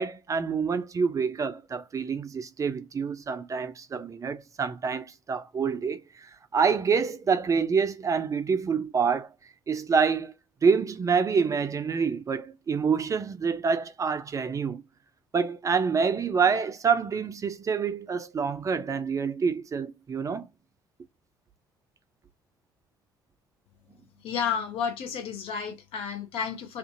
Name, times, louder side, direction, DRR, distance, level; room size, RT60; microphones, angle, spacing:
voice 1, 0.0-9.3 9.7-10.3 10.6-14.8 15.3-20.5, right 5 dB, 30° right, 0.4 m, -27 dB
voice 2, 24.2-26.8, left 7 dB, 55° left, 0.7 m, -31 dB
2.5 x 2.4 x 2.5 m
figure-of-eight pair, 50°, 11 cm